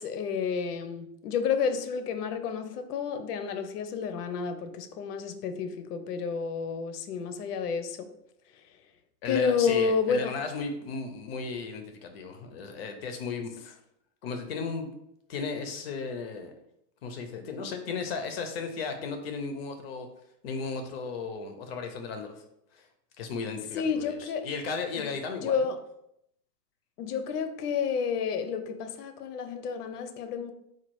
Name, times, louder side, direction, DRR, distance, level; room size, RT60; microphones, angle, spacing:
voice 1, 0.0-8.1 9.3-10.3 23.7-24.5 25.4-25.8 27.0-30.5, left 6 dB, 80° left, 0.7 m, -30 dB
voice 2, 9.2-13.8 14.2-14.9 15.3-16.5 17.0-20.1 20.4-22.4 22.7-22.9 23.2-25.5, left 4 dB, 40° left, 0.6 m, -35 dB
4.3 x 2.3 x 4.5 m
supercardioid pair, 175°, 46 cm